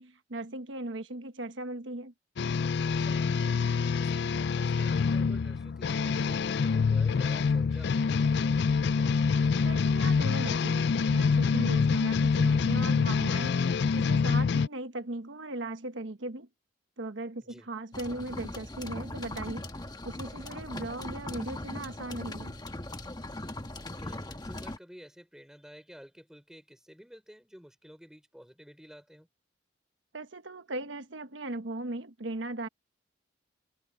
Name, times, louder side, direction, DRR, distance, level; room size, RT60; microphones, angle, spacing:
voice 1, 0.0-2.1 9.6-13.6 13.9-16.5 17.0-19.7 20.0-22.5 30.1-32.7, right 2 dB, 80° right, 1.2 m, -38 dB
sound 1, 2.4-14.7, left 5 dB, 60° left, 0.4 m, -26 dB
voice 2, 2.9-3.6 4.0-9.1 17.4-17.7 23.9-29.3, equal, 5° right, 4.1 m, -52 dB
sound 2, 17.9-24.8, left 1 dB, 20° left, 1.4 m, -39 dB
head